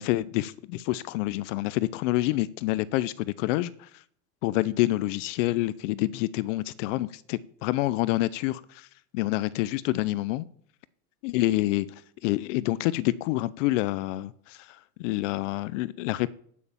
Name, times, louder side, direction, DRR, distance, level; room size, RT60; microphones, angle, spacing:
voice 1, 0.0-4.0 4.4-8.9 9.1-10.4 11.2-11.9 12.2-16.3, left 17 dB, 60° left, 0.6 m, -27 dB
12.0 x 6.5 x 7.2 m
supercardioid pair, 150°, 42 cm